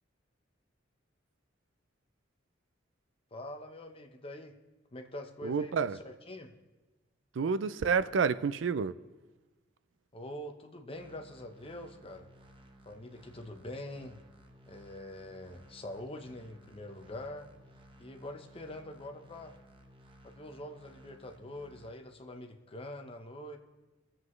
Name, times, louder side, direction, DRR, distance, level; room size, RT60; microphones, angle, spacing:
voice 1, 3.3-4.5 4.9-6.5 10.1-12.3 12.9-14.2 14.7-17.5 18.0-19.5 20.2-23.6, left 1 dB, 30° left, 0.9 m, -44 dB
voice 2, 5.4-6.0 7.4-8.9, right 5 dB, 70° right, 0.4 m, -29 dB
sound 1, 10.9-21.9, equal, 25° right, 0.9 m, -57 dB
22.0 x 7.7 x 3.2 m
head